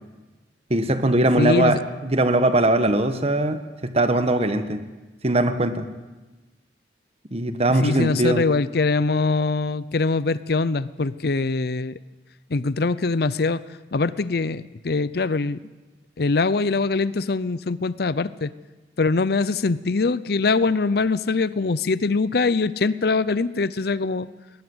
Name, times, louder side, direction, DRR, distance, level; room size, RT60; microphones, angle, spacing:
voice 1, 0.7-4.8 5.2-5.8 7.3-8.4, right 1 dB, 35° right, 9 dB, 1.4 m, -21 dB
voice 2, 1.4-1.8 7.8-12.0 12.5-13.6 13.9-15.6 16.2-18.5 19.0-24.3, left 3 dB, 60° left, 17 dB, 0.6 m, -23 dB
20.5 x 19.0 x 7.9 m, 1.2 s
head